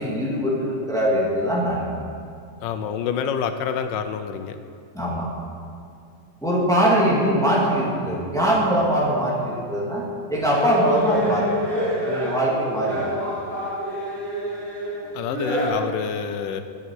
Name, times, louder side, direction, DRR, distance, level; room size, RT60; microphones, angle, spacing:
voice 1, 0.0-1.9 4.9-5.3 6.4-10.0 10.3-13.1, equal, ahead, -5 dB, 2.0 m, -22 dB
voice 2, 2.6-4.6 15.1-16.6, left 7 dB, 75° left, 9 dB, 1.4 m, -27 dB
sound 1, 10.5-15.7, equal, 70° right, 3.6 m, -27 dB
13.0 x 9.4 x 4.7 m, 2.4 s
omnidirectional pair, 2.0 m